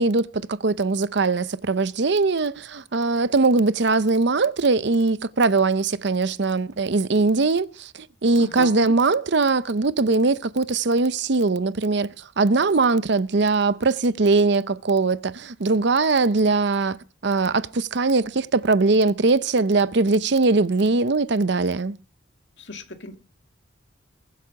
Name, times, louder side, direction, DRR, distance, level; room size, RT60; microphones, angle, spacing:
voice 1, 0.0-22.0, right 3 dB, 60° right, 0.7 m, -21 dB
voice 2, 8.4-8.9 22.6-23.2, left 2 dB, 65° left, 2.1 m, -36 dB
22.0 x 8.6 x 5.9 m
head